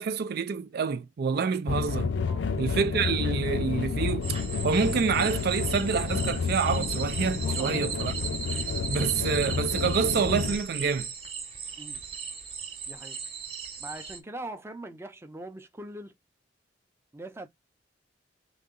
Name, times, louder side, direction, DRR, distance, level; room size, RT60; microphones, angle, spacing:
voice 1, 0.0-2.1 2.6-4.4 4.6-8.1 8.5-11.1, right 5 dB, 55° right, 0.4 m, -27 dB
sound 1, 1.7-10.6, left 5 dB, 75° left, 0.6 m, -30 dB
sound 2, 4.2-14.2, right 6 dB, 30° right, 1.0 m, -37 dB
voice 2, 7.4-7.8 11.8-12.0 12.9-13.2 13.8-16.1 17.1-17.5, right 1 dB, 15° right, 0.6 m, -41 dB
3.9 x 2.8 x 3.7 m
head